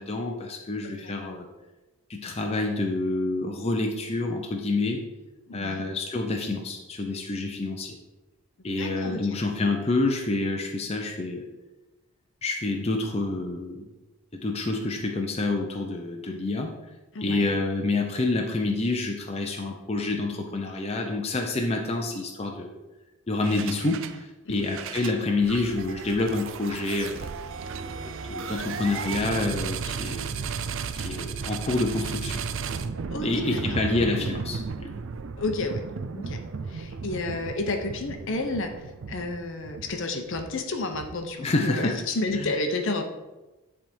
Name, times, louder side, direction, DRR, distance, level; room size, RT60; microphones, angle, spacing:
voice 1, 0.0-1.5 2.1-5.0 5.5-7.9 8.6-11.5 12.4-13.9 14.3-16.7 17.2-22.8 23.3-27.3 27.8-30.3 30.9-32.4 33.2-34.9 41.4-42.0 42.3-42.5, left 2 dB, 25° left, 1 dB, 0.6 m, -28 dB
voice 2, 5.5-5.8 8.8-9.3 17.1-17.5 23.5-23.7 24.5-24.7 33.1-33.6 35.4-35.8 36.1-36.4 36.7-43.0, left 2 dB, 55° left, 5 dB, 0.8 m, -31 dB
sound 1, 23.4-24.2 24.5-41.5, right 5 dB, 55° right, 0.4 m, -35 dB
10.0 x 3.6 x 4.5 m, 1.1 s
head